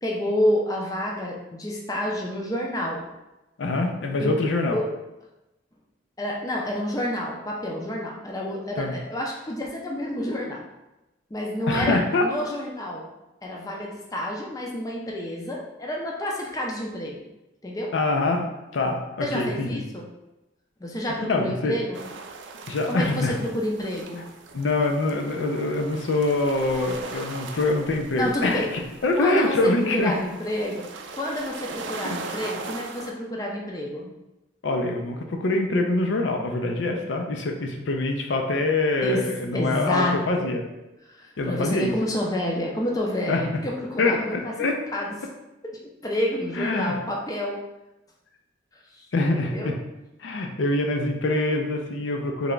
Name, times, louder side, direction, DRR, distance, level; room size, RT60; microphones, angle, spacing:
voice 1, 0.0-3.0 4.2-4.4 4.7-4.9 6.2-10.6 11.3-13.1 13.4-17.2 17.6-17.9 19.2-20.1 20.8-22.0 22.9-24.2 28.2-28.7 29.2-30.9 31.1-34.1 39.0-39.2 39.5-40.6 41.1-44.5 44.9-45.1 46.0-47.6 48.9-49.1 49.3-49.7, left 1 dB, 20° left, -1 dB, 0.4 m, -29 dB
voice 2, 3.6-4.8 8.8-9.0 11.7-12.3 17.9-18.5 18.7-19.8 21.3-21.8 22.7-23.3 24.5-28.7 29.0-30.1 32.1-32.2 34.6-40.6 41.4-41.9 43.3-43.5 44.0-44.8 46.6-47.0 49.1-49.8 50.2-52.5, left 2 dB, 80° left, 3 dB, 0.5 m, -24 dB
sound 1, 21.9-33.1, right 4 dB, 70° right, 0.4 m, -40 dB
3.3 x 2.2 x 3.8 m, 0.97 s
head